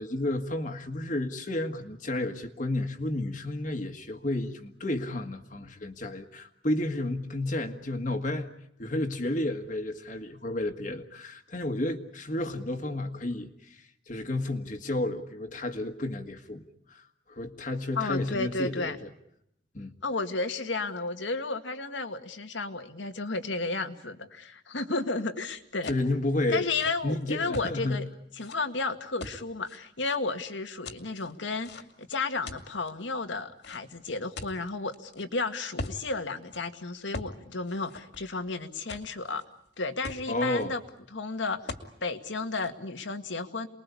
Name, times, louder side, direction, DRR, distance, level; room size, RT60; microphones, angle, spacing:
voice 1, 0.0-8.5 8.8-16.6 16.9-19.1 19.7-19.9 25.8-26.7 27.0-28.0 40.3-40.7, left 1 dB, 45° left, 4 dB, 1.7 m, -31 dB
voice 2, 17.9-19.0 20.0-25.9 26.5-28.0 28.4-39.4 39.8-40.8 41.1-41.7 42.0-43.7, left 3 dB, 85° left, 7 dB, 2.0 m, -33 dB
sound 1, 25.9-26.1 26.6-27.7 28.4-28.6 29.2-30.2 30.9-32.0 32.5-32.9 33.6-35.3 35.8-36.0 36.4-36.6 37.1-37.4 37.7-38.5 38.9-39.4 39.7-39.8 40.0-40.6 41.7-41.9 42.3-42.7, left 2 dB, 65° left, 2.4 m, -41 dB
28.5 x 21.5 x 8.5 m, 0.78 s
head